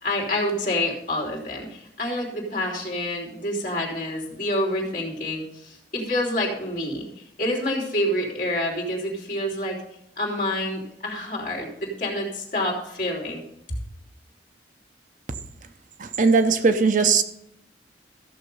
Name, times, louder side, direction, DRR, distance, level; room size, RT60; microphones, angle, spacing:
voice 1, 0.0-7.1 7.4-9.8 10.2-13.4 13.7-13.8, left 1 dB, 50° left, -2 dB, 3.3 m, -27 dB
voice 2, 16.0-17.2, right 4 dB, 45° right, 9 dB, 0.7 m, -19 dB
14.5 x 6.6 x 5.4 m, 0.79 s
head